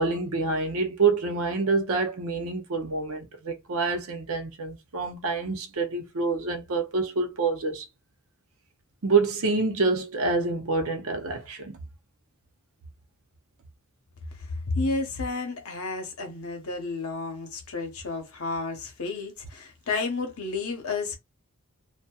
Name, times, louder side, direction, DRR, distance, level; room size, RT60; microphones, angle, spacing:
voice 1, 0.0-7.8 9.0-11.7, right 4 dB, 70° right, 0.6 m, -27 dB
voice 2, 14.4-21.2, left 3 dB, 80° left, 0.9 m, -31 dB
2.6 x 2.2 x 2.3 m
head